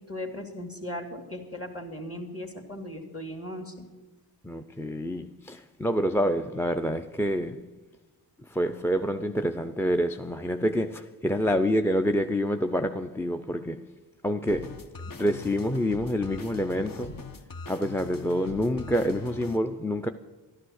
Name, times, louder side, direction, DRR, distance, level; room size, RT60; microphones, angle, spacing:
voice 1, 0.0-3.9, left 1 dB, 35° left, 2.2 m, -37 dB
voice 2, 4.4-7.7 8.5-13.9 14.2-14.8 15.1-17.2 17.7-20.1, equal, 5° left, 0.4 m, -27 dB
sound 1, 14.5-19.6, left 4 dB, 50° left, 0.8 m, -42 dB
12.0 x 11.5 x 6.4 m
cardioid pair, 50°, 42 cm